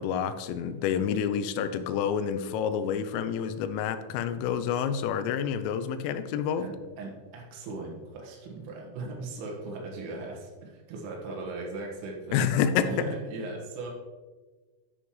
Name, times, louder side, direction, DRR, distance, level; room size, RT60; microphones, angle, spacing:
voice 1, 0.0-6.7 12.3-12.9, left 8 dB, 90° left, 11 dB, 3.2 m, -28 dB
voice 2, 6.6-12.5 12.9-13.9, right 3 dB, 90° right, -1 dB, 4.0 m, -38 dB
12.0 x 5.9 x 3.1 m, 1.3 s
omnidirectional pair, 5.7 m